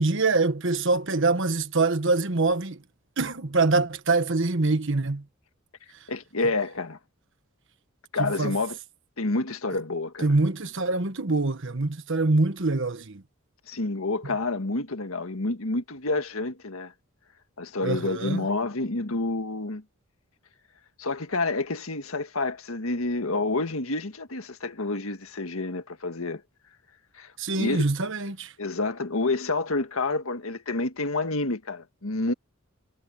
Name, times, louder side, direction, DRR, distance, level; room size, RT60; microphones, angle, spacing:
voice 1, 0.0-2.8 3.2-5.2 8.2-8.5 10.2-13.2 17.8-18.5 27.4-28.5, right 3 dB, 65° right, 1.4 m, -24 dB
voice 2, 6.1-7.0 8.1-8.8 9.2-10.4 13.7-16.9 17.6-19.8 21.0-26.4 27.2-27.9 28.6-32.3, left 2 dB, 80° left, 1.7 m, -29 dB
head